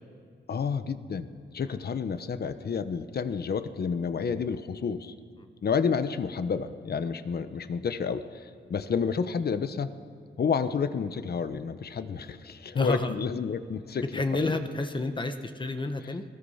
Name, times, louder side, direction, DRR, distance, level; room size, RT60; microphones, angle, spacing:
voice 1, 0.5-5.1 5.6-9.9 10.4-14.6, left 6 dB, 55° left, 11 dB, 1.1 m, -30 dB
voice 2, 12.7-13.2 14.1-16.2, left 2 dB, 25° left, 7 dB, 1.2 m, -30 dB
28.5 x 20.5 x 5.7 m, 2.2 s
wide cardioid pair, 120°, 19 cm